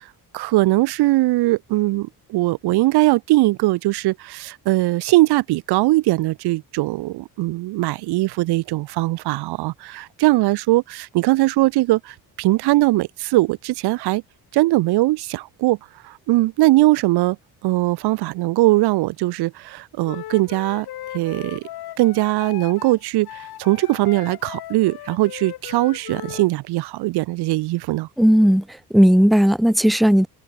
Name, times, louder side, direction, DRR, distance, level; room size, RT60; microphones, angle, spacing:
voice 1, 0.3-14.2 14.5-15.8 16.0-17.4 17.6-20.9 21.1-21.6 22.0-28.1, right 19 dB, 90° right, 0.8 m, -20 dB
Wind instrument woodwind instrument, 20.0-26.5, left 14 dB, 75° left, 1.9 m, -37 dB
voice 2, 28.2-28.6 28.9-30.3, equal, ahead, 0.7 m, -15 dB
open air
cardioid pair, 125°, 38 cm